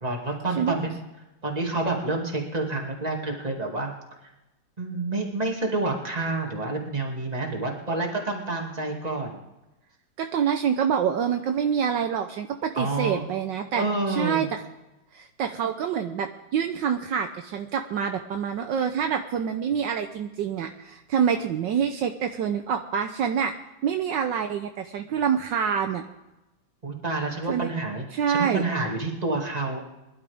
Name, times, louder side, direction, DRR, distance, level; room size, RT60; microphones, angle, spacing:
voice 1, 0.0-1.0 1.4-3.9 4.8-9.4 12.7-13.2 13.7-14.5 26.8-29.8, right 2 dB, 20° right, 1 dB, 2.4 m, -28 dB
voice 2, 10.2-14.6 15.1-23.5 23.8-26.0 27.5-27.7 28.1-28.6, right 7 dB, 70° right, 6 dB, 1.4 m, -26 dB
22.5 x 12.0 x 3.5 m, 0.99 s
omnidirectional pair, 2.1 m